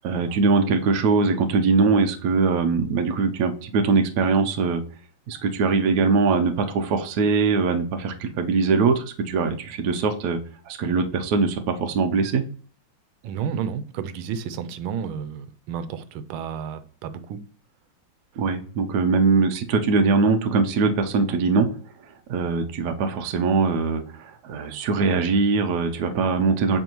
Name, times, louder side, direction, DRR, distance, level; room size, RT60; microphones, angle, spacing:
voice 1, 0.0-4.8 5.3-10.4 10.7-12.4 18.4-21.7 22.3-26.8, right 4 dB, 65° right, 6 dB, 1.1 m, -22 dB
voice 2, 13.2-17.4, right 7 dB, 85° right, 12 dB, 1.4 m, -31 dB
7.9 x 4.4 x 3.0 m, 0.43 s
omnidirectional pair, 2.2 m